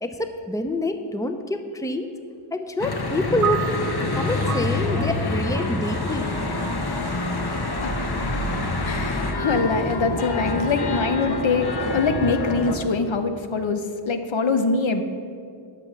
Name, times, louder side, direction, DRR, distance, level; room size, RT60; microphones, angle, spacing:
voice 1, 0.0-2.1 2.5-3.7 4.1-6.4, left 1 dB, 5° left, 7 dB, 0.7 m, -27 dB
Church bell / Traffic noise roadway noise, 2.8-12.8, left 2 dB, 50° left, 1.1 m, -26 dB
sound 1, 3.4-9.9, right 9 dB, 40° right, 0.4 m, -35 dB
voice 2, 8.8-15.0, left 4 dB, 70° left, 8 dB, 0.8 m, -23 dB
11.5 x 6.8 x 6.1 m, 2.4 s
wide cardioid pair, 65°, 48 cm